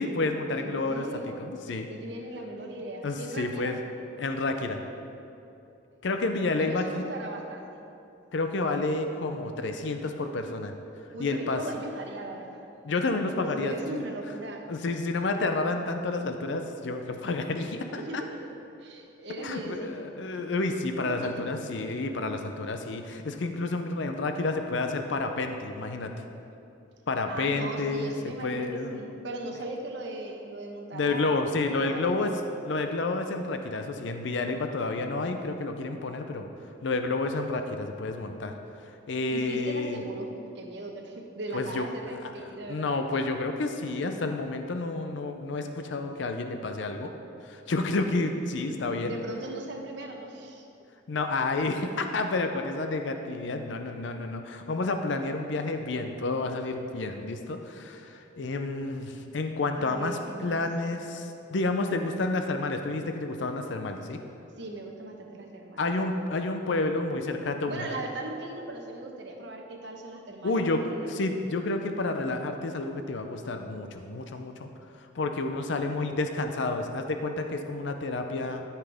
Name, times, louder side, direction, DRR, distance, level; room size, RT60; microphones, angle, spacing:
voice 1, 0.0-1.0 1.4-1.9 3.0-3.8 4.2-4.8 6.0-7.0 8.3-10.7 11.2-11.6 12.8-14.0 14.7-18.2 19.4-26.1 27.1-28.1 28.4-29.0 30.9-32.3 32.6-36.5 36.8-38.5 39.1-40.0 41.5-41.9 42.2-42.3 42.7-47.1 47.4-49.1 51.1-64.2 65.8-68.0 70.4-74.7 75.2-78.6, left 3 dB, 65° left, 6 dB, 0.5 m, -30 dB
voice 2, 0.5-1.4 1.9-3.7 6.4-7.8 11.1-12.7 13.6-14.6 17.9-18.3 18.8-20.1 21.0-21.5 27.3-31.4 31.7-32.3 39.1-42.8 49.0-50.7 59.8-60.6 64.6-65.9 67.6-71.1, right 2 dB, 60° right, 2 dB, 1.0 m, -39 dB
13.0 x 5.7 x 3.5 m, 2.8 s
head